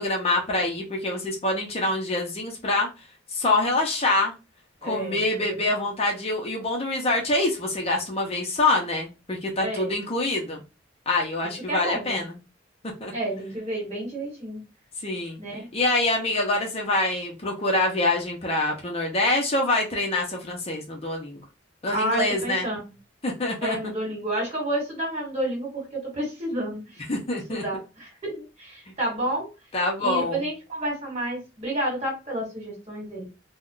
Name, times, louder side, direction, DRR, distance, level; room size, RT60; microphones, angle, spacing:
voice 1, 0.0-2.9 3.3-4.3 4.8-10.6 11.1-12.4 13.0-13.1 15.0-15.4 15.7-21.4 21.8-22.7 23.2-23.8 27.1-27.6 28.9-29.0 29.7-30.4, left 2 dB, 35° left, 0.6 m, -25 dB
voice 2, 4.8-5.7 9.6-9.9 11.7-12.2 13.1-14.6 15.4-15.7 21.9-22.9 23.6-27.0 27.5-29.5 30.0-33.3, right 1 dB, 35° right, 1.5 m, -30 dB
2.4 x 2.1 x 3.7 m
head